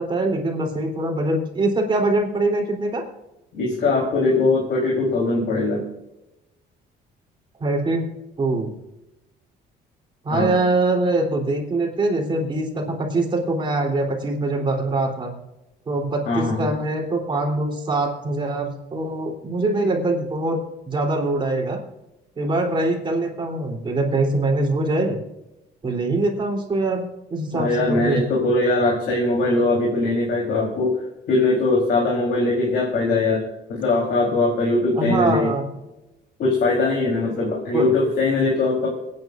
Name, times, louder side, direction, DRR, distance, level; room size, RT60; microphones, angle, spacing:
voice 1, 0.0-3.0 7.6-8.1 8.4-8.7 10.2-15.3 15.9-20.6 20.9-21.8 22.4-25.2 25.8-28.2 35.0-35.7 37.7-37.9, right 2 dB, 25° right, 1 dB, 3.5 m, -23 dB
voice 2, 3.5-5.8 10.3-10.5 16.3-16.7 27.5-30.9 31.3-33.4 33.7-35.5 36.4-38.9, left 2 dB, 60° left, -3 dB, 3.8 m, -21 dB
29.0 x 9.6 x 2.6 m, 0.96 s
cardioid pair, 130°, 18 cm